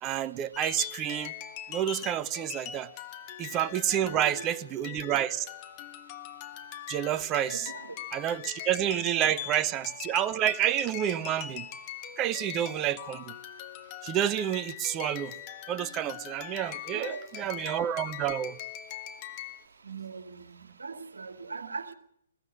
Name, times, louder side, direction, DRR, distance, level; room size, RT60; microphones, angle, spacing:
voice 1, 0.0-1.3 1.7-2.9 3.4-5.5 6.9-7.7 8.1-11.7 12.2-13.3 14.0-15.3 15.7-18.6, right 11 dB, 20° right, 0.8 m, -29 dB
sound 1, 0.5-19.6, left 11 dB, 30° left, 1.4 m, -42 dB
voice 2, 4.0-4.3 7.5-7.9 16.9-17.3 19.8-21.9, right 4 dB, 65° right, 2.2 m, -40 dB
21.0 x 15.5 x 8.4 m
figure-of-eight pair, 125°, 0 cm